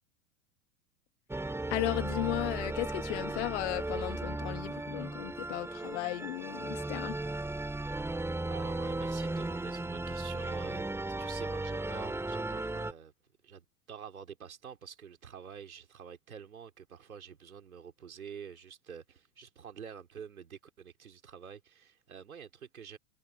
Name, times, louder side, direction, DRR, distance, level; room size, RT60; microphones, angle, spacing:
sound 1, 1.3-12.9, right 2 dB, 5° right, 2.5 m, -36 dB
voice 1, 1.7-7.2, left 21 dB, 55° left, 1.8 m, -35 dB
voice 2, 8.5-10.9 11.2-13.1 13.4-23.0, right 7 dB, 75° right, 4.3 m, -47 dB
figure-of-eight pair, 85°, 42 cm